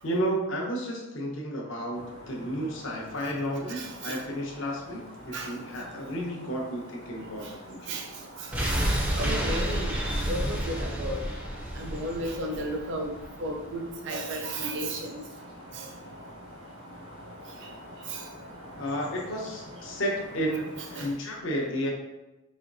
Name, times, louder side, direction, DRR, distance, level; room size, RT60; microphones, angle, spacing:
voice 1, 0.0-8.0 18.8-21.9, equal, 60° left, -1 dB, 0.8 m, -32 dB
sound 1, 1.9-21.1, equal, 90° right, 1.1 m, -47 dB
voice 2, 3.7-4.2 5.3-5.5 7.9-8.0 9.2-11.2 11.8-13.1 13.4-15.1 15.8-15.9 18.1-18.2 21.0-21.1, right 1 dB, 55° right, 2 dB, 0.5 m, -33 dB
sound 2, 8.5-13.5 13.8-13.9, right 1 dB, 5° right, 0.4 m, -30 dB
4.2 x 3.0 x 2.6 m, 1.0 s
head